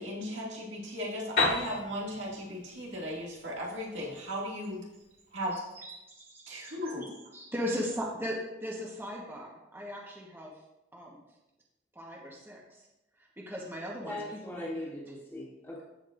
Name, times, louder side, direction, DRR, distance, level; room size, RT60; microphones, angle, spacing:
voice 1, 0.0-4.8 5.3-5.6 6.5-7.1, equal, 90° right, -4 dB, 2.2 m, -36 dB
Piano, 1.4-5.0, left 3 dB, 75° left, 2.3 m, -34 dB
voice 2, 5.5-6.7 7.0-10.5 10.9-11.2 11.9-12.9 13.2-14.2 14.5-14.7, equal, 10° right, -3 dB, 1.2 m, -38 dB
voice 3, 14.0-15.8, left 1 dB, 10° left, -4 dB, 1.8 m, -39 dB
14.0 x 5.3 x 2.6 m, 0.95 s
head